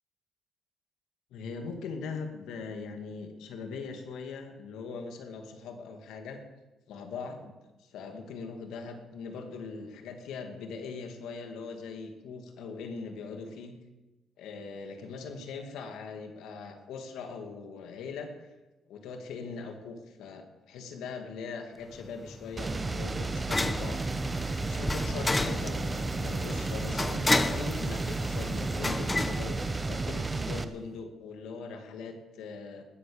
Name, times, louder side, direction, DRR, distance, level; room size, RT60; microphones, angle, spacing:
voice 1, 1.3-6.4 6.9-7.5 7.8-13.7 14.4-18.5 18.9-24.0 24.7-29.6 29.9-32.9, left 4 dB, 85° left, 5 dB, 2.3 m, -41 dB
sound 1, 21.9-30.3, left 2 dB, 20° left, 0.9 m, -33 dB
sound 2, 22.6-30.6, right 3 dB, 25° right, 1.0 m, -32 dB
19.5 x 8.2 x 7.2 m, 1.1 s
cardioid pair, 90°, 0 cm